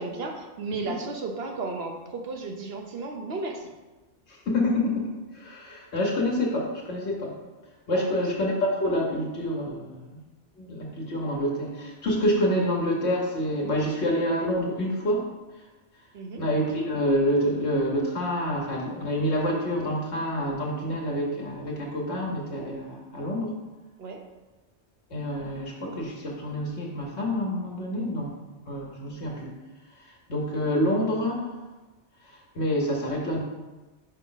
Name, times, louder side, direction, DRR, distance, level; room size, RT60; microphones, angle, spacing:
voice 1, 0.0-3.7 7.9-8.2 16.1-16.4 24.0-24.2, right 3 dB, 65° right, 2 dB, 1.0 m, -34 dB
voice 2, 4.3-7.4 7.9-10.2 10.6-15.3 16.4-23.6 25.1-28.4 28.7-29.5 30.3-31.5 32.3-33.4, equal, 75° left, -3 dB, 1.3 m, -27 dB
5.4 x 5.1 x 3.9 m, 1.2 s
omnidirectional pair, 1.2 m